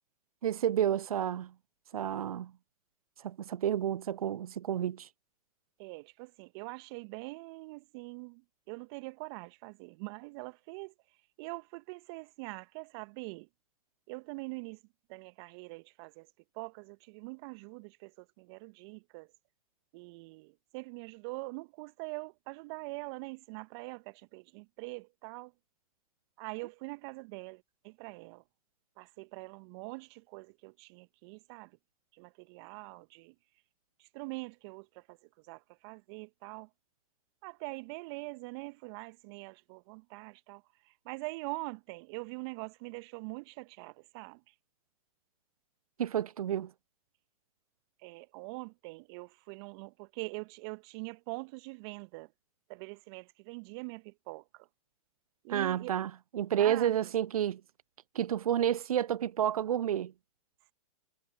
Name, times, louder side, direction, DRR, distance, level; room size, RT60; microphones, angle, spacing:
voice 1, 0.4-1.5 1.9-2.5 3.2-5.1 46.0-46.7 55.5-57.6 58.1-60.1, right 10 dB, 75° right, 0.4 m, -30 dB
voice 2, 5.8-10.9 11.4-13.5 14.1-14.8 15.1-16.3 16.5-19.3 19.9-25.5 26.4-28.4 29.0-31.7 32.1-33.3 34.0-35.2 35.5-36.7 37.4-44.4 48.0-52.3 52.7-54.7 55.4-55.9 56.6-57.1, right 28 dB, 45° right, 1.5 m, -44 dB
hypercardioid pair, 110°, 19 cm